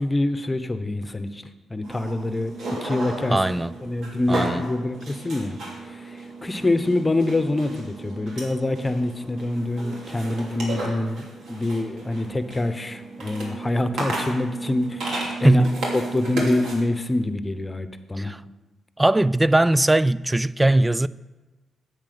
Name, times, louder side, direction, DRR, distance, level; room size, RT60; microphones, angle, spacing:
voice 1, 0.0-1.4 1.7-3.4 3.8-5.6 5.9-15.7 15.9-18.3, left 2 dB, 25° left, 1.0 m, -26 dB
sound 1, 1.8-16.7, right 2 dB, 75° right, 2.8 m, -33 dB
voice 2, 3.3-3.8 4.3-4.6 15.4-15.8 18.2-18.4 19.0-21.1, right 1 dB, 15° right, 0.4 m, -20 dB
8.8 x 8.3 x 5.9 m
supercardioid pair, 50°, 0 cm